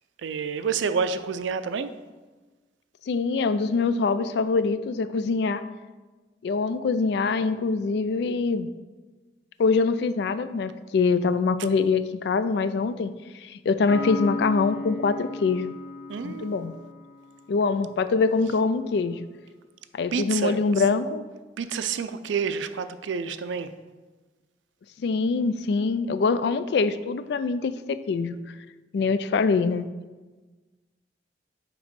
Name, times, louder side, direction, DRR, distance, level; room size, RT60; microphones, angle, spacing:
voice 1, 0.2-1.9 16.1-16.6 20.1-20.6 21.6-23.7, right 6 dB, 85° right, 11 dB, 0.4 m, -29 dB
voice 2, 3.1-5.6 6.4-8.7 9.6-15.7 16.2-16.7 17.5-19.3 19.9-21.2 25.0-28.4 28.9-29.9, left 4 dB, 65° left, 13 dB, 0.3 m, -24 dB
Piano, 13.9-17.5, left 3 dB, 90° left, 0.7 m, -35 dB
7.7 x 3.0 x 5.2 m, 1.3 s
head